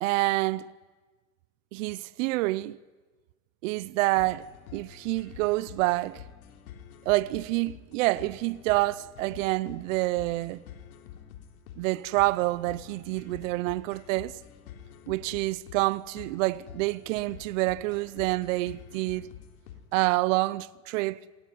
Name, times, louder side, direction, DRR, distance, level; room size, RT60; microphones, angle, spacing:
voice 1, 0.0-0.7 1.7-2.8 3.6-4.5 4.7-6.2 7.1-10.6 11.8-14.4 15.1-19.3 19.9-21.2, right 20 dB, 65° right, 0.8 m, -27 dB
sound 1, 4.2-20.1, left 9 dB, 85° left, 3.9 m, -48 dB
27.5 x 19.0 x 9.5 m
supercardioid pair, 145°, 42 cm